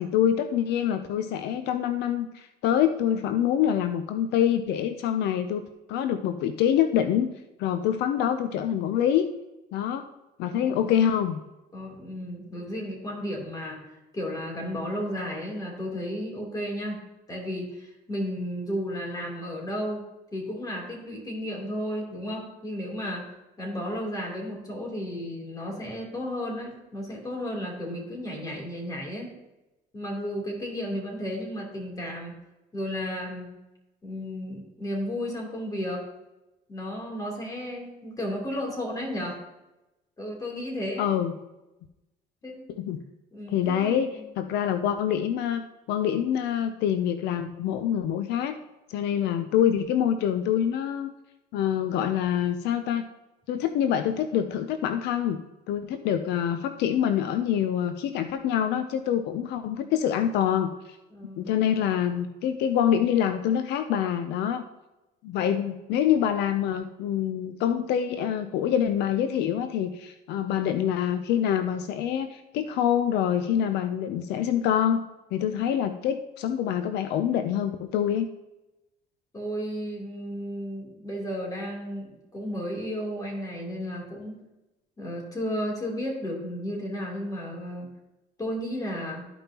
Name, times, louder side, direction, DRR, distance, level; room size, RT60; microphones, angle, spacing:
voice 1, 0.0-7.3 7.6-9.2 9.7-10.1 10.4-11.4 41.0-41.3 42.8-43.0 43.5-48.6 48.9-51.1 51.5-53.1 53.5-55.4 55.7-61.0 61.4-64.6 65.2-75.0 75.3-78.3, left 9 dB, 80° left, 9 dB, 0.5 m, -26 dB
voice 2, 10.4-10.8 11.7-13.8 14.1-17.0 17.3-20.0 20.3-23.3 23.6-29.3 29.9-32.3 32.7-33.5 34.0-36.0 36.7-39.4 40.2-41.1 42.4-42.7 43.3-44.2 61.1-61.5 65.4-65.7 79.3-84.4 85.0-87.9 88.4-89.3, equal, 20° left, -2 dB, 3.1 m, -33 dB
13.0 x 5.4 x 2.9 m, 0.98 s
cardioid pair, 110°, 17 cm